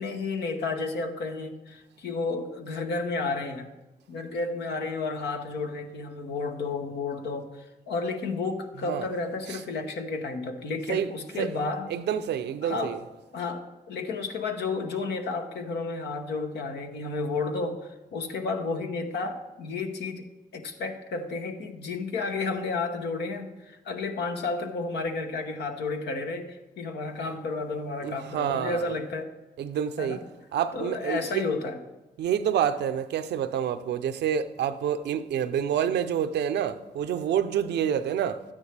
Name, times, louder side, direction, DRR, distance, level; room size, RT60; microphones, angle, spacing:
voice 1, 0.0-3.7 4.1-11.9 12.6-13.0 13.3-20.2 20.5-29.3 30.0-30.2 30.7-31.8, left 3 dB, 90° left, 1.0 m, -32 dB
voice 2, 11.9-13.0 28.0-28.9 29.6-30.2 30.5-31.4 32.2-38.4, right 9 dB, 85° right, 0.6 m, -28 dB
12.5 x 9.6 x 3.4 m
cardioid pair, 60°, 17 cm